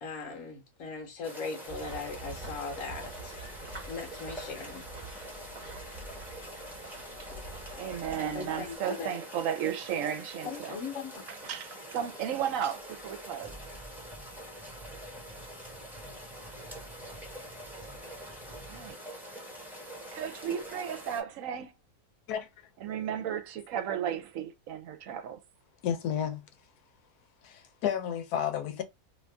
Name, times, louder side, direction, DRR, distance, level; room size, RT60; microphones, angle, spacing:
voice 1, 0.0-4.8 8.0-8.1 8.3-9.1 10.4-11.3, left 4 dB, 65° left, 1.2 m, -39 dB
sound 1, 1.2-21.2, equal, ahead, 0.9 m, -45 dB
sound 2, 1.7-8.8, right 2 dB, 35° right, 1.0 m, -46 dB
voice 2, 7.8-10.8 11.3-13.6 18.5-19.0 20.1-21.7 22.8-25.4, right 9 dB, 70° right, 0.9 m, -34 dB
sound 3, 12.8-18.9, right 1 dB, 20° left, 0.9 m, -52 dB
voice 3, 22.3-22.7 25.8-26.5 27.4-28.8, left 9 dB, 90° left, 1.2 m, -32 dB
2.8 x 2.6 x 3.3 m
omnidirectional pair, 1.6 m